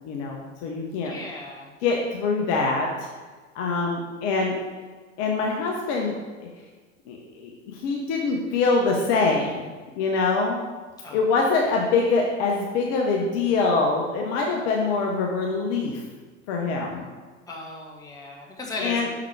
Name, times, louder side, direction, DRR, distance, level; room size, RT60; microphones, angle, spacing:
voice 1, 0.0-1.1 1.8-3.1 3.5-4.6 5.2-6.1 7.1-9.6 10.0-10.6 11.1-16.0 16.5-17.1 18.8-19.1, left 4 dB, 40° left, 0 dB, 0.8 m, -24 dB
voice 2, 1.0-1.7 11.0-11.4 17.5-19.1, left 2 dB, 10° left, -2 dB, 1.2 m, -36 dB
5.8 x 3.8 x 4.7 m, 1.4 s
figure-of-eight pair, 90°, 38 cm